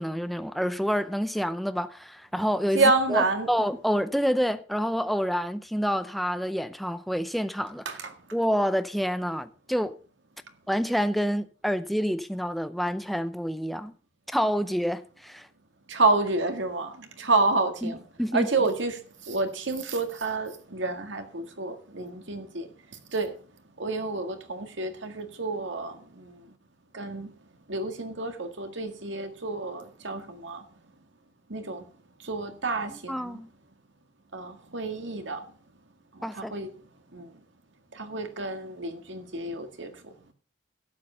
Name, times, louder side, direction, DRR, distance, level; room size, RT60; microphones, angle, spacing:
voice 1, 0.0-8.0 8.3-9.9 10.7-13.9 14.3-15.5 17.8-17.9 18.2-18.5 32.9-33.5 36.2-36.5, equal, ahead, 0.5 m, -28 dB
voice 2, 2.7-3.5 7.9-8.1 15.9-18.0 18.3-22.7 23.1-23.4 23.8-26.5 26.9-27.3 27.7-30.7 31.5-31.8 32.2-33.4 34.3-35.5 36.1-36.7 37.1-37.3 37.9-40.1, right 3 dB, 80° right, 1.9 m, -29 dB
12.0 x 7.8 x 5.6 m
head